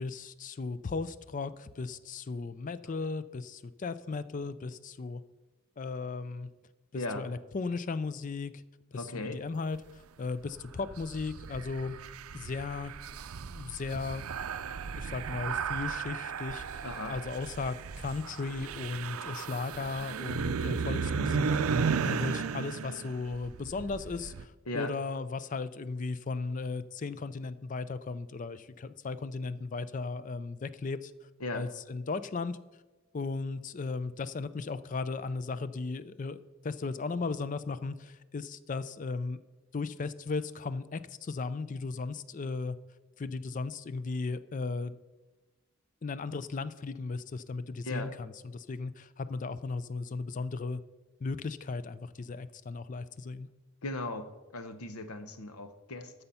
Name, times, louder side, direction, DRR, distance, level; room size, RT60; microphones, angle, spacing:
voice 1, 0.0-5.2 5.8-6.5 6.9-8.6 8.9-12.0 12.3-12.9 13.4-14.2 15.0-31.1 31.5-32.6 33.1-36.4 36.6-39.4 39.7-42.8 43.2-44.9 46.0-50.8 51.2-53.5, left 4 dB, 35° left, 15 dB, 0.4 m, -36 dB
voice 2, 6.9-7.3 8.9-9.4 16.8-17.2 24.7-24.9 31.4-31.7 47.8-48.1 53.8-56.1, left 2 dB, 80° left, 9 dB, 0.9 m, -37 dB
sound 1, 10.6-24.4, right 5 dB, 75° right, 0.5 m, -35 dB
13.0 x 6.8 x 5.6 m, 1.2 s
head